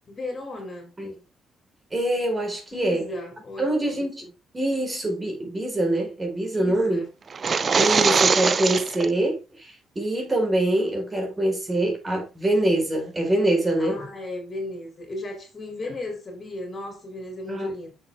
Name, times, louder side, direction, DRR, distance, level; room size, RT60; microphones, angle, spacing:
voice 1, 0.1-0.9 2.7-4.3 6.5-7.1 13.8-17.9, left 2 dB, 35° left, 3.6 m, -35 dB
voice 2, 1.9-3.1 3.6-4.3 4.5-7.0 7.7-14.0 17.5-17.7, right 1 dB, 25° right, 4.6 m, -24 dB
sound 1, 7.3-9.1, right 5 dB, 40° right, 0.6 m, -21 dB
8.1 x 6.9 x 3.6 m
cardioid pair, 90°, 0 cm